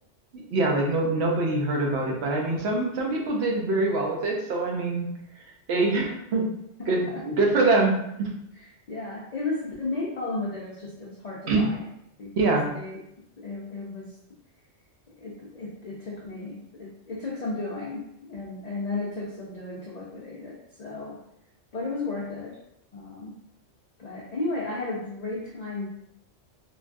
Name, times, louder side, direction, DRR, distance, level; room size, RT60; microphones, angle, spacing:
voice 1, 0.3-5.1 5.7-6.5 6.9-8.3 11.5-11.7 12.4-12.7, right 2 dB, 65° right, 0 dB, 0.8 m, -24 dB
voice 2, 6.8-7.2 8.6-11.8 12.2-13.0 13.4-14.2 15.2-21.2 21.7-22.6 22.9-23.4 24.0-25.9, left 3 dB, 65° left, -4 dB, 0.4 m, -34 dB
3.2 x 2.3 x 2.5 m, 0.78 s
omnidirectional pair, 1.3 m